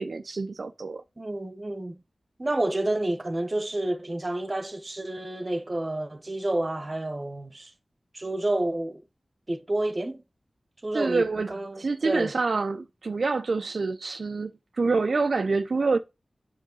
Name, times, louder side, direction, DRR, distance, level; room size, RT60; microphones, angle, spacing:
voice 1, 0.0-1.0 10.9-16.0, right 4 dB, 80° right, 0.5 m, -27 dB
voice 2, 1.2-2.0 2.4-7.7 8.1-9.0 9.5-10.2 10.8-12.3, right 1 dB, 35° right, 1.0 m, -29 dB
8.3 x 6.3 x 3.8 m
wide cardioid pair, 75°, 0 cm